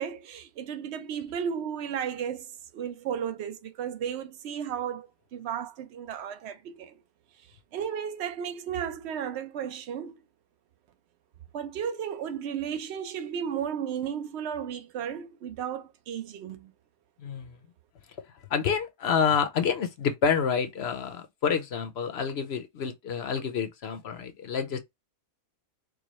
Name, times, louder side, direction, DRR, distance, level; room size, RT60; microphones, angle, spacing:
voice 1, 0.0-7.0 7.7-10.2 11.5-16.7, right 8 dB, 60° right, 0.9 m, -34 dB
voice 2, 17.2-17.6 18.5-24.8, left 6 dB, 60° left, 0.8 m, -28 dB
4.8 x 2.3 x 3.0 m
omnidirectional pair, 1.5 m